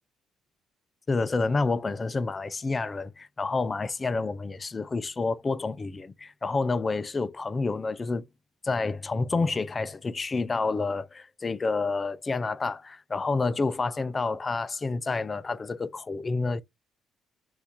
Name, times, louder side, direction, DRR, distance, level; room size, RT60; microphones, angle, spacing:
voice 1, 1.1-8.3 8.6-16.6, left 3 dB, 25° left, 0.4 m, -29 dB
5.8 x 2.5 x 2.9 m
cardioid pair, 120°, 0 cm